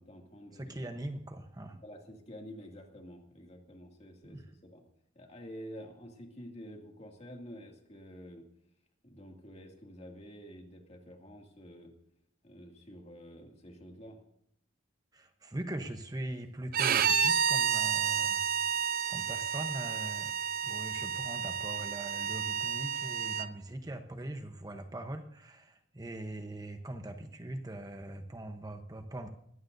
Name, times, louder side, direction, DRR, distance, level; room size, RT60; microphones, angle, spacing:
voice 1, 0.0-0.9 1.8-4.8 5.1-8.4 9.0-11.9 12.4-14.2, equal, 35° left, 2 dB, 2.4 m, -49 dB
voice 2, 0.5-1.8 4.2-4.5 15.1-18.5 19.1-20.3 20.6-29.3, right 1 dB, 20° right, 6 dB, 0.9 m, -41 dB
Bowed string instrument, 16.7-23.5, right 8 dB, 50° right, 0.6 m, -30 dB
21.0 x 15.5 x 2.7 m, 0.74 s
head